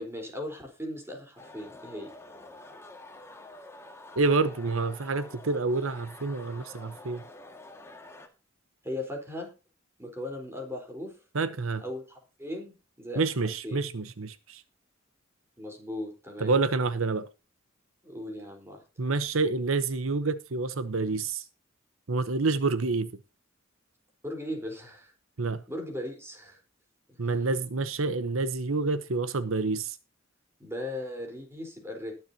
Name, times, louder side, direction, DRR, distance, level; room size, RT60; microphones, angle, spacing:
voice 1, 0.0-2.1 8.8-9.5 10.0-11.2 11.8-13.8 15.6-16.6 18.0-18.8 24.2-25.1 25.7-26.6 27.1-27.2 30.6-32.1, left 1 dB, 15° right, 4.1 m, -38 dB
sound 1, 1.4-8.3, left 2 dB, 15° left, 1.9 m, -48 dB
voice 2, 4.2-7.2 11.3-11.8 13.2-14.6 16.4-17.2 19.0-21.4 22.1-23.1 25.4-25.6 27.2-30.0, right 3 dB, 90° right, 0.9 m, -28 dB
20.5 x 7.5 x 2.8 m
head